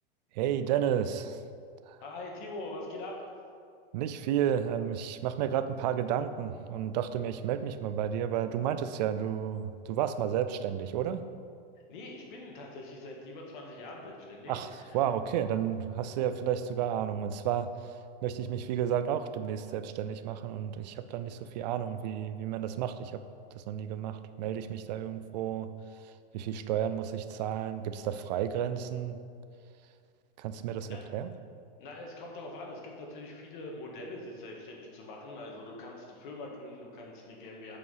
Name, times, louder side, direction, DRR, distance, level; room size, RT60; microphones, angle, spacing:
voice 1, 0.3-1.4 1.9-2.0 3.9-11.3 14.5-23.2 23.5-25.7 26.0-29.2 30.4-31.3, right 9 dB, 45° right, 11 dB, 0.5 m, -32 dB
voice 2, 2.0-3.3 11.9-15.0 30.9-31.0 31.8-37.8, left 2 dB, 55° left, 0 dB, 1.7 m, -43 dB
8.2 x 4.9 x 5.5 m, 2.3 s
supercardioid pair, 155°, 30 cm